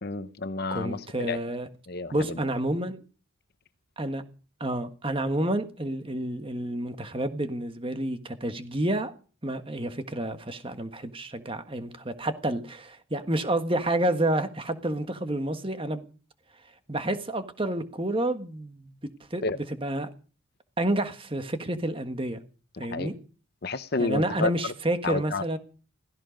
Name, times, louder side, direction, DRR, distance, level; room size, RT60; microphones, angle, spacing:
voice 1, 0.0-1.4 1.9-2.1 19.4-19.6 22.8-23.1 23.6-24.5 25.0-25.4, left 3 dB, 45° left, 0.9 m, -30 dB
voice 2, 0.7-1.7 2.1-3.0 4.0-4.2 4.6-9.1 9.4-16.0 16.9-19.0 19.3-20.1 20.8-22.4 22.8-23.1 24.0-25.6, right 1 dB, 25° right, 1.4 m, -29 dB
16.5 x 16.0 x 5.2 m
head